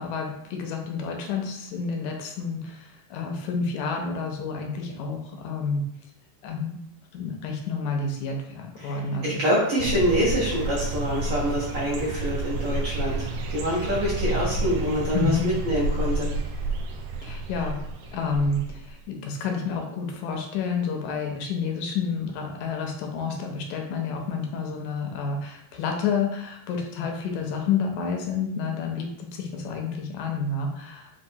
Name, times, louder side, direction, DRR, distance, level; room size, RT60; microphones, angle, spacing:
voice 1, 0.0-5.8 6.4-6.8 7.1-9.5 15.1-15.5 17.2-17.8 18.1-31.1, left 5 dB, 75° left, 2 dB, 2.0 m, -29 dB
voice 2, 9.2-16.3, equal, 55° right, -8 dB, 1.4 m, -26 dB
sound 1, 9.8-19.0, right 2 dB, 90° right, 1.5 m, -30 dB
6.2 x 2.6 x 2.7 m, 0.78 s
omnidirectional pair, 3.7 m